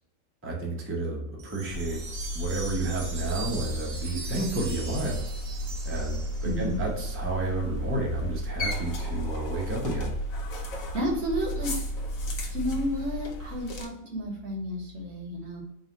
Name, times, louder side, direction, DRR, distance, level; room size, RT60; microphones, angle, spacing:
voice 1, 0.4-2.0 2.3-5.3 5.8-10.2, right 2 dB, 15° right, -2 dB, 0.5 m, -31 dB
sound 1, 1.4-6.8, right 4 dB, 75° right, 1.2 m, -41 dB
sound 2, 1.7-13.9, equal, 80° left, 1.2 m, -33 dB
voice 2, 6.4-6.8 10.9-11.7 12.5-15.6, equal, 55° right, 0 dB, 1.1 m, -31 dB
3.9 x 2.4 x 4.0 m, 0.80 s
omnidirectional pair, 1.4 m